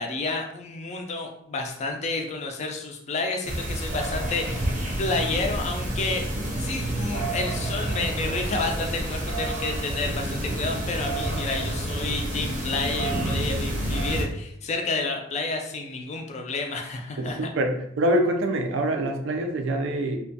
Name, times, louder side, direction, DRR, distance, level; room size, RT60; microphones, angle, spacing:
voice 1, 0.0-4.7 5.0-17.5, left 3 dB, 35° left, 3 dB, 0.3 m, -30 dB
sound 1, 3.4-14.2, right 1 dB, 40° right, 0.6 m, -29 dB
voice 2, 17.2-20.2, right 1 dB, 90° right, 4 dB, 0.4 m, -25 dB
2.3 x 2.1 x 2.6 m, 0.72 s
head